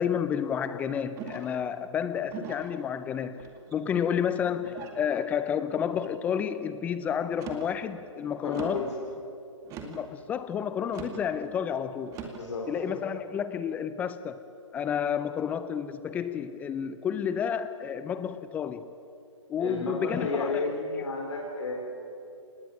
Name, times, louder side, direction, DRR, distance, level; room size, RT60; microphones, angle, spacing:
voice 1, 0.0-3.4 3.7-8.8 9.8-12.1 12.7-14.4 14.7-18.9 19.5-20.7, left 8 dB, 10° left, 13 dB, 0.5 m, -30 dB
sound 1, 1.2-1.6 2.3-2.8 3.4-3.9 4.6-5.0 5.7-6.1 7.3-7.7 8.5-8.9 9.6-10.1 10.9-11.3 12.1-12.5, right 8 dB, 20° right, 2.2 m, -42 dB
voice 2, 8.4-8.9 12.4-12.8 19.6-21.7, left 3 dB, 60° left, -1 dB, 4.8 m, -32 dB
25.5 x 19.5 x 9.0 m, 2.6 s
hypercardioid pair, 145°, 16 cm